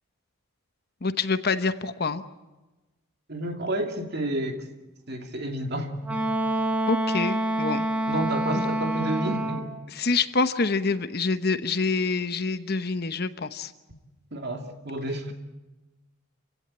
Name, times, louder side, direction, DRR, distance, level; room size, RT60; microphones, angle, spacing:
voice 1, 1.0-2.2 6.9-7.9 8.5-8.7 9.9-13.7, left 4 dB, 45° left, 11 dB, 1.0 m, -26 dB
voice 2, 3.3-4.6 5.1-6.2 8.1-9.7 14.3-15.3, right 1 dB, 50° right, 4 dB, 2.7 m, -30 dB
Wind instrument woodwind instrument, 6.0-9.7, right 1 dB, 5° right, 2.0 m, -27 dB
27.0 x 17.0 x 8.8 m, 1.1 s
head